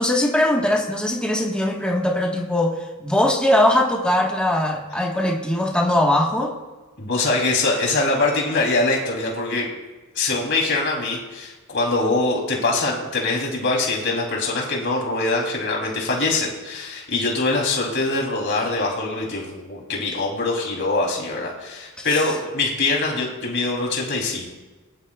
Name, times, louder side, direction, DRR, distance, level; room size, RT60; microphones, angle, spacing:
voice 1, 0.0-6.5 22.0-22.2, left 1 dB, 5° left, -2 dB, 1.4 m, -21 dB
voice 2, 7.0-9.7 10.1-24.5, left 2 dB, 60° left, -1 dB, 3.2 m, -23 dB
21.5 x 11.5 x 2.4 m, 1.2 s
head